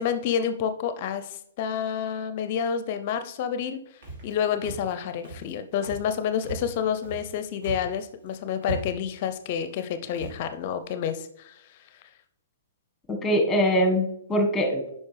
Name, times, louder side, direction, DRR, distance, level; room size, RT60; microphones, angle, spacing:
voice 1, 0.0-3.8 4.2-11.8, left 8 dB, 40° left, 10 dB, 0.5 m, -29 dB
Walk footsteps, 4.0-4.3 4.6-4.9 5.2-5.5 5.8-6.1 6.4-7.3 7.6-8.0 8.3-8.4 8.6-9.1 9.7-9.8 10.1-10.4, right 2 dB, 55° right, 2.7 m, -37 dB
voice 2, 13.1-14.9, equal, 10° left, 4 dB, 1.4 m, -23 dB
9.4 x 5.5 x 3.3 m, 0.75 s
figure-of-eight pair, 125°, 0 cm